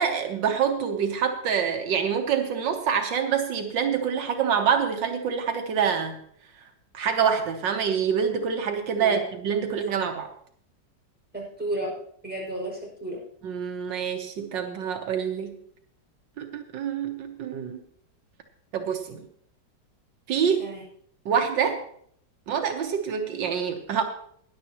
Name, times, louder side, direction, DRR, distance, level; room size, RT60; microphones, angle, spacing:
voice 1, 0.0-6.2 6.9-10.3 13.4-15.6 16.4-17.8 18.7-19.2 20.3-20.7 21.2-21.8 22.5-24.0, right 7 dB, 80° right, 4 dB, 1.7 m, -26 dB
voice 2, 11.3-12.0 12.2-13.2 20.6-20.8, right 1 dB, 5° right, -4 dB, 5.8 m, -32 dB
20.0 x 10.5 x 3.0 m, 0.63 s
omnidirectional pair, 1.9 m